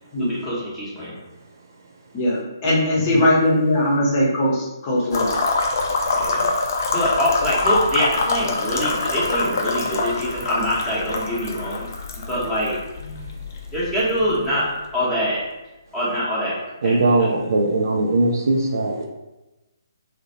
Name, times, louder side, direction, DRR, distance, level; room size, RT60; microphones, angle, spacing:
voice 1, 0.2-1.1 6.1-6.5 6.9-11.9 12.2-12.8 13.7-15.4 15.9-16.6 16.8-17.3, equal, ahead, -12 dB, 0.9 m, -24 dB
voice 2, 2.1-5.3, left 1 dB, 30° left, -5 dB, 0.7 m, -20 dB
sound 1, 5.1-14.9, left 3 dB, 45° left, 0.3 m, -25 dB
voice 3, 16.8-19.1, right 2 dB, 55° right, 1 dB, 0.4 m, -20 dB
2.4 x 2.1 x 2.7 m, 1.0 s
figure-of-eight pair, 135°, 2 cm